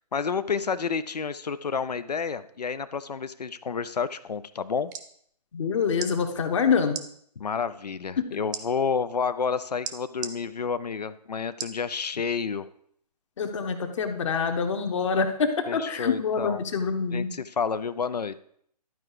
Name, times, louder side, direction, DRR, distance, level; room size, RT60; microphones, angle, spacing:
voice 1, 0.1-4.9 7.4-12.7 15.7-16.6 17.1-18.4, left 5 dB, 75° left, 14 dB, 0.6 m, -30 dB
sound 1, 4.7-5.1 5.9-6.1 6.9-7.1 8.5-8.6 9.8-10.3 11.6-11.8 12.4-12.5, right 8 dB, 25° right, 0.7 m, -35 dB
voice 2, 5.5-7.0 13.4-17.3, left 5 dB, 45° left, 6 dB, 1.2 m, -26 dB
12.0 x 4.7 x 4.8 m, 0.65 s
figure-of-eight pair, 135°, 21 cm